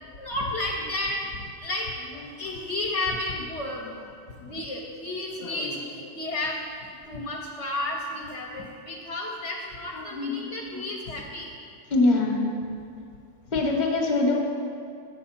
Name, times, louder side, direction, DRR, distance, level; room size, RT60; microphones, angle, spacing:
voice 1, 0.2-1.9 2.4-4.1 4.4-6.6 7.1-11.5, left 2 dB, 65° left, -2 dB, 0.9 m, -32 dB
voice 2, 5.4-6.1 9.9-10.9 11.9-12.5 13.5-14.3, left 2 dB, 40° left, 1 dB, 1.0 m, -25 dB
8.3 x 6.2 x 4.3 m, 2.4 s
omnidirectional pair, 1.4 m